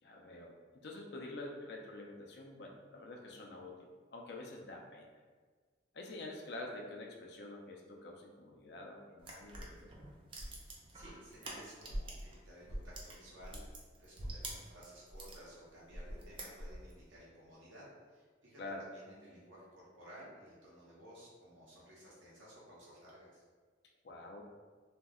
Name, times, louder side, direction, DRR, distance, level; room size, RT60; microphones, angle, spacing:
voice 1, 0.0-5.1 5.9-9.9 18.6-18.9 24.0-24.4, left 2 dB, 55° left, 0 dB, 0.4 m, -47 dB
sound 1, 9.2-12.3 12.6-15.4 15.9-17.0, right 1 dB, 25° right, 0.3 m, -45 dB
voice 2, 10.6-13.6 14.0-23.4, equal, 80° right, -6 dB, 1.0 m, -56 dB
2.5 x 2.1 x 3.5 m, 1.5 s
head